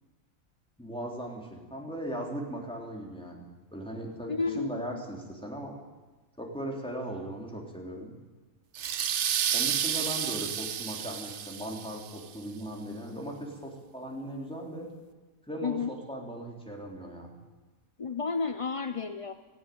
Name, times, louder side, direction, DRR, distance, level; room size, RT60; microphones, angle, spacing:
voice 1, 0.8-5.8 6.4-8.2 9.5-14.9 15.5-17.4, right 1 dB, 5° left, -1 dB, 3.8 m, -38 dB
voice 2, 4.3-5.0 15.6-15.9 18.0-19.3, left 5 dB, 35° left, 8 dB, 0.5 m, -31 dB
sound 1, 8.8-12.2, right 9 dB, 60° right, 1.0 m, -31 dB
18.0 x 15.0 x 9.6 m, 1.2 s
omnidirectional pair, 1.5 m